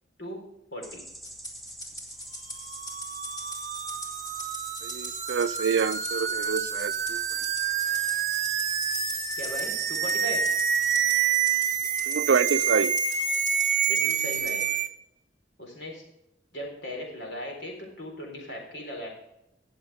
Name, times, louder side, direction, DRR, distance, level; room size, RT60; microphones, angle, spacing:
sound 1, 0.8-10.9, right 1 dB, ahead, 0.7 m, -45 dB
Rattle (instrument), 1.2-14.7, left 1 dB, 20° left, 2.3 m, -41 dB
sound 2, 2.6-14.9, right 7 dB, 45° right, 0.8 m, -28 dB
voice 1, 4.8-7.2 12.1-12.9, right 6 dB, 70° right, 0.4 m, -27 dB
voice 2, 9.4-10.4 13.9-14.6 15.6-16.0 16.5-19.1, left 1 dB, 70° left, 4.2 m, -38 dB
18.5 x 7.1 x 3.5 m
head